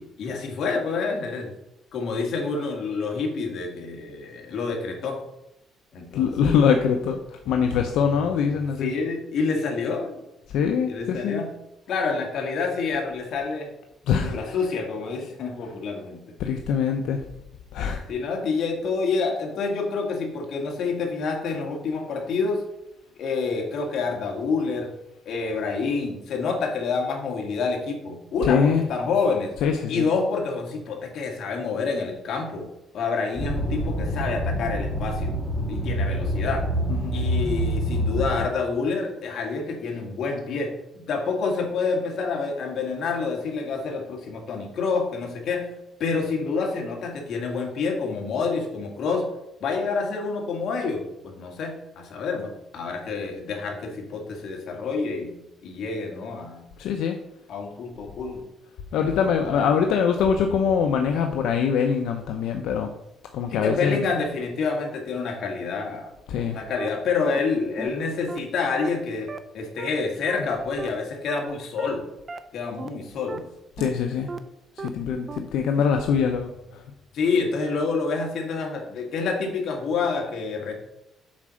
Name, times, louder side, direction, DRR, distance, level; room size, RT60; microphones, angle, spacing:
voice 1, 0.0-1.5 1.9-5.2 5.9-6.8 8.8-10.2 10.9-11.5 11.9-13.7 14.2-16.3 18.1-22.6 23.2-24.9 25.3-29.5 29.9-32.7 32.9-35.3 35.7-36.6 37.1-45.7 46.0-49.3 49.6-55.3 55.6-56.7 57.5-58.4 58.9-59.7 63.5-66.1 66.5-69.3 69.5-72.1 72.5-73.4 77.1-80.7, left 4 dB, 60° left, 1 dB, 1.9 m, -28 dB
voice 2, 6.1-7.2 7.5-8.9 10.5-11.4 14.1-14.5 16.4-17.2 17.7-18.0 28.4-28.8 29.6-30.1 37.0-37.1 56.8-57.2 58.9-62.9 63.3-64.0 66.3-66.6 73.8-74.3 74.8-76.5, left 7 dB, 80° left, 4 dB, 0.7 m, -23 dB
sound 1, 33.3-38.5, equal, 10° left, 2.5 m, -26 dB
sound 2, 66.8-66.9 67.3-67.4 67.8-67.9 68.3-68.4 68.8-68.9 69.3-69.4 69.8-69.9 70.3-70.4 70.8-70.9 71.3-71.4 71.8-71.9 72.3-72.4 72.8-72.9 73.3-73.4 73.8-73.9 74.3-74.4 74.8-74.9 75.3-75.4 75.8-75.9, right 5 dB, 30° right, 0.6 m, -34 dB
7.4 x 4.3 x 6.3 m, 0.88 s
cardioid pair, 140°, 0 cm